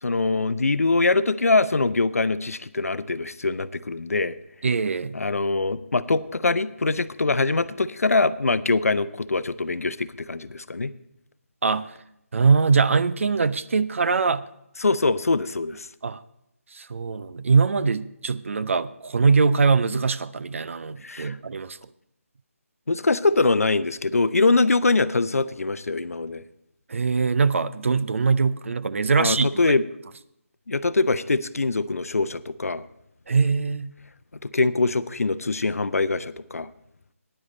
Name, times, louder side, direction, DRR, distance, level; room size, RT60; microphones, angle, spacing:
voice 1, 0.0-4.4 5.1-10.9 14.8-15.9 21.0-21.4 22.9-26.4 29.2-29.8 30.7-32.8 34.4-36.7, left 3 dB, 80° left, 15 dB, 0.6 m, -23 dB
voice 2, 4.6-5.2 11.6-11.9 12.3-14.4 16.0-16.2 16.7-21.8 26.9-29.5 33.3-33.9, right 4 dB, 60° right, 14 dB, 0.5 m, -22 dB
14.5 x 10.0 x 4.1 m, 0.80 s
figure-of-eight pair, 155°, 8 cm